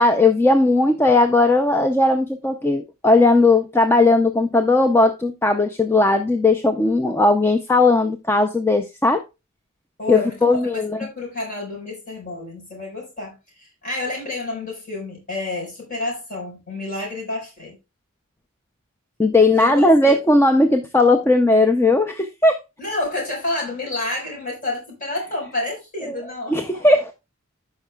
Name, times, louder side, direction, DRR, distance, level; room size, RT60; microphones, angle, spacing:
voice 1, 0.0-9.2 10.1-11.0 19.2-22.6 26.1-26.2 26.5-27.1, left 2 dB, 10° left, 0.4 m, -17 dB
voice 2, 10.0-17.7 19.5-20.2 22.8-26.8, left 2 dB, 40° left, 4.6 m, -29 dB
14.0 x 5.6 x 2.3 m
head